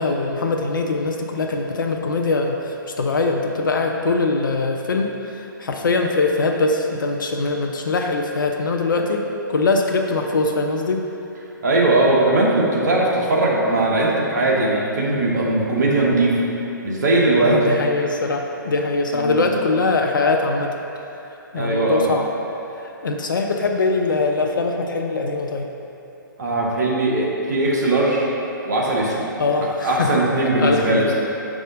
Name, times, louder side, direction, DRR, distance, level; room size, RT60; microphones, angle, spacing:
voice 1, 0.0-11.0 17.4-20.7 21.5-22.3 22.8-25.7 29.4-31.1, left 3 dB, 70° left, 2 dB, 0.6 m, -22 dB
voice 2, 11.6-16.4 16.8-17.6 19.1-19.4 21.5-22.0 26.4-28.3 28.6-29.2 29.6-31.1, right 2 dB, 55° right, -3 dB, 1.3 m, -19 dB
6.4 x 4.9 x 3.8 m, 2.9 s
figure-of-eight pair, 125°, 11 cm